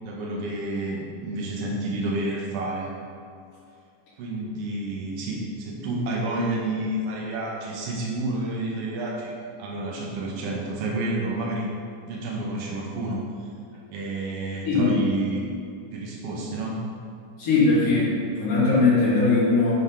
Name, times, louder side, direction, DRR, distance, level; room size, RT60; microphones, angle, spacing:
voice 1, 0.0-2.9 4.2-9.3 9.6-11.7 12.0-13.5 13.9-15.4 15.9-16.8, right 2 dB, 70° right, -2 dB, 1.4 m, -30 dB
voice 2, 14.6-14.9 17.4-19.7, left 3 dB, 50° left, -12 dB, 2.8 m, -20 dB
8.8 x 3.9 x 5.7 m, 2.5 s
omnidirectional pair, 3.8 m